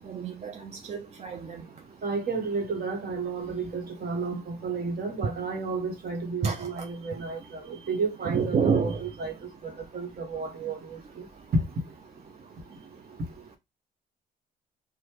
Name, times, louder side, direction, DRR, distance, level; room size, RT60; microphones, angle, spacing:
voice 1, 0.1-1.6 6.4-6.7 8.3-9.0, right 5 dB, 35° right, 0.4 m, -28 dB
voice 2, 2.0-11.3, right 4 dB, 50° right, 1.1 m, -32 dB
3.1 x 2.1 x 3.2 m
cardioid pair, 90°, 20 cm